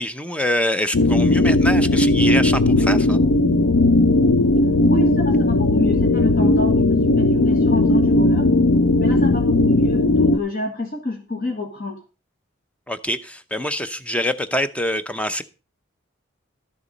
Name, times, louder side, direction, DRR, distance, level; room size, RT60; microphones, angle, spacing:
voice 1, 0.0-3.2 12.9-15.4, left 1 dB, 5° left, 0.7 m, -25 dB
sound 1, 0.9-10.4, left 2 dB, 70° left, 0.6 m, -17 dB
voice 2, 4.8-8.5 9.0-12.0, left 2 dB, 45° left, 1.8 m, -28 dB
12.0 x 7.0 x 5.2 m
head